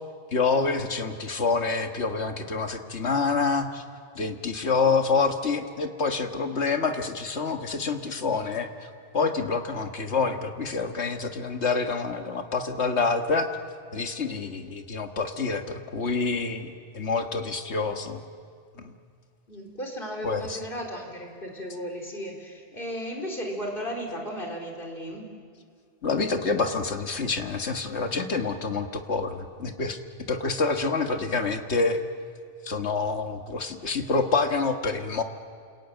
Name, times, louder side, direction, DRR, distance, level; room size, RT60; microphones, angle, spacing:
voice 1, 0.3-3.8 4.2-13.5 13.9-18.2 18.8-18.9 20.2-20.6 26.0-30.0 30.3-32.0 32.6-35.2, left 4 dB, 85° left, 5 dB, 1.9 m, -27 dB
voice 2, 19.5-25.3, equal, 55° left, 1 dB, 4.5 m, -35 dB
29.0 x 22.0 x 9.2 m, 2.1 s
omnidirectional pair, 1.1 m